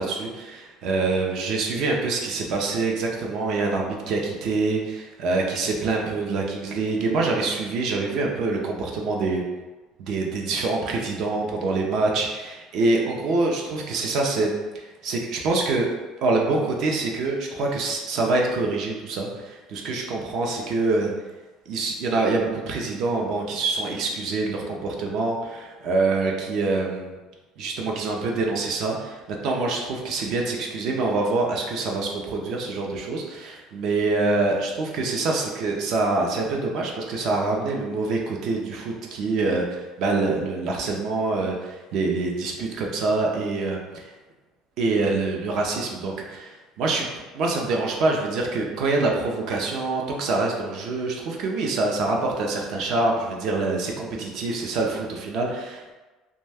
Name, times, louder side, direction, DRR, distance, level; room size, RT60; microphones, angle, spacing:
voice 1, 0.0-9.4 10.0-14.6 15.0-15.9 16.2-21.1 21.7-27.2 27.6-29.2 29.4-44.1 44.8-47.1 47.3-55.9, right 3 dB, 50° right, 0 dB, 0.5 m, -25 dB
2.6 x 2.1 x 3.3 m, 1.2 s
cardioid pair, 175°, 0 cm